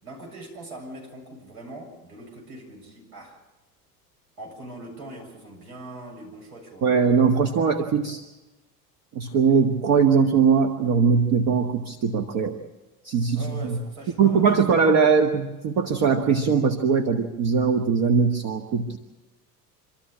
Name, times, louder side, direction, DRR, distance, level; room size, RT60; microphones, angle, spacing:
voice 1, 0.0-3.4 4.4-6.9 13.3-14.8, right 1 dB, 70° right, -1 dB, 7.6 m, -41 dB
voice 2, 6.8-8.2 9.2-12.6 13.0-13.8 14.2-19.0, right 6 dB, 45° right, 3 dB, 1.7 m, -21 dB
26.0 x 13.5 x 8.7 m, 1.1 s
figure-of-eight pair, 70°, 48 cm